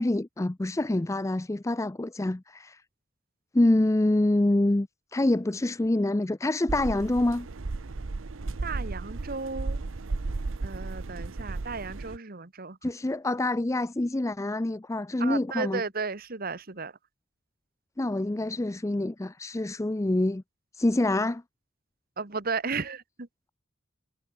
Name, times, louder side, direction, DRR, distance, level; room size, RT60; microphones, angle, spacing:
voice 1, 0.0-2.8 3.5-7.5 12.8-15.8 18.0-20.4 20.7-21.4, left 1 dB, 15° left, 0.5 m, -26 dB
sound 1, 6.7-12.2, right 3 dB, 85° right, 0.8 m, -34 dB
voice 2, 8.6-9.8 10.6-12.9 15.2-16.9 22.2-23.3, right 4 dB, 50° right, 1.4 m, -34 dB
head